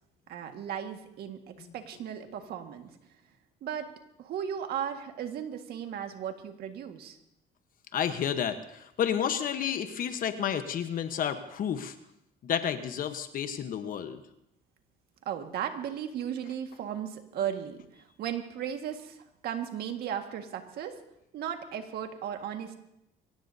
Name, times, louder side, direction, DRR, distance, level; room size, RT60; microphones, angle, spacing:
voice 1, 0.3-2.9 3.6-3.9 4.2-7.2 15.3-20.9 21.3-22.8, right 9 dB, 70° right, 5 dB, 1.8 m, -36 dB
voice 2, 7.9-11.9 12.4-14.2, left 8 dB, 55° left, 8 dB, 1.1 m, -31 dB
23.5 x 17.5 x 2.8 m, 0.81 s
cardioid pair, 110°, 17 cm